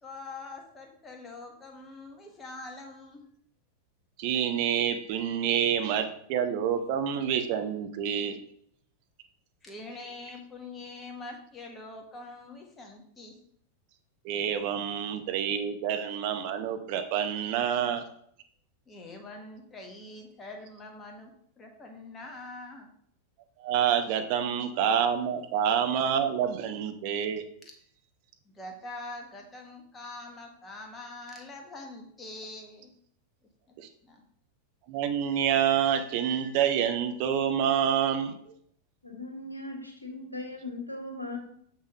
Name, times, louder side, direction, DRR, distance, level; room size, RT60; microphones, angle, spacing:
voice 1, 0.0-3.2 9.6-13.4 18.9-22.9 28.4-32.9 34.0-34.2, left 2 dB, 20° left, 2 dB, 1.5 m, -44 dB
voice 2, 4.2-8.4 14.2-18.0 23.6-27.4 33.8-33.9 34.9-38.4, right 8 dB, 45° right, 7 dB, 0.8 m, -27 dB
voice 3, 39.0-41.4, left 2 dB, 85° left, 2 dB, 1.3 m, -38 dB
6.7 x 5.9 x 3.6 m, 0.66 s
figure-of-eight pair, 90°, 0 cm